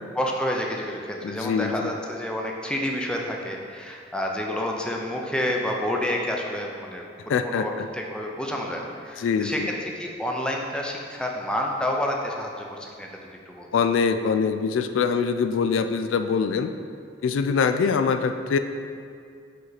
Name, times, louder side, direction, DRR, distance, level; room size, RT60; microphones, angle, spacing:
voice 1, 0.1-13.1 13.5-13.7, left 1 dB, 5° left, 0 dB, 0.5 m, -29 dB
voice 2, 1.2-1.9 7.3-7.9 9.2-9.7 13.7-16.7 17.2-18.6, left 5 dB, 90° left, 9 dB, 0.3 m, -24 dB
5.8 x 5.3 x 4.0 m, 2.3 s
head